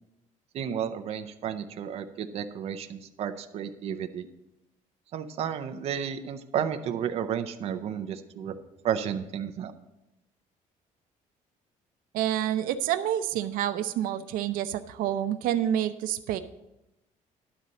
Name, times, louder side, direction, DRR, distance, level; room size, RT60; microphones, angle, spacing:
voice 1, 0.5-4.3 5.1-8.6 8.8-9.7, right 8 dB, 45° right, 7 dB, 0.6 m, -32 dB
voice 2, 12.1-16.4, right 11 dB, 90° right, 9 dB, 0.6 m, -28 dB
11.5 x 4.1 x 7.5 m, 0.92 s
cardioid pair, 175°, 14 cm